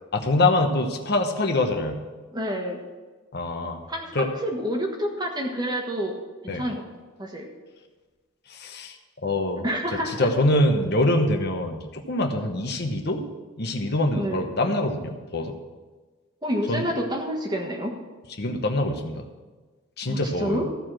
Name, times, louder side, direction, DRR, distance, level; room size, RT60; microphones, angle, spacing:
voice 1, 0.1-2.0 3.3-3.8 4.1-4.3 6.5-6.6 8.5-8.9 9.2-9.6 10.2-13.2 13.6-15.5 16.7-16.8 18.4-19.2 20.0-20.6, left 1 dB, 50° left, 4 dB, 1.0 m, -24 dB
voice 2, 2.3-2.8 3.9-6.2 6.4-6.8 7.2-7.5 9.6-10.3 14.1-14.5 16.4-17.9 20.1-20.7, equal, 20° right, 2 dB, 1.4 m, -28 dB
14.5 x 4.9 x 7.5 m, 1.3 s
head